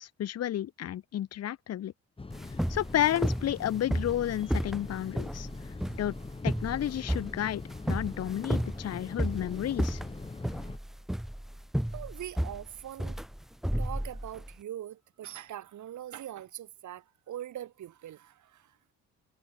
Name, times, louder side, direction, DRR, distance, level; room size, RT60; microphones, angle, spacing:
voice 1, 0.0-1.9 2.7-5.5 6.0-6.1 6.4-7.6 7.9-10.0, left 11 dB, 55° left, 0.9 m, -31 dB
sound 1, 2.2-10.8, left 3 dB, 20° left, 1.5 m, -43 dB
sound 2, 2.3-14.5, equal, ahead, 0.4 m, -33 dB
voice 2, 11.9-13.2 13.8-18.8, right 11 dB, 75° right, 7.0 m, -42 dB
cardioid pair, 90°, 30 cm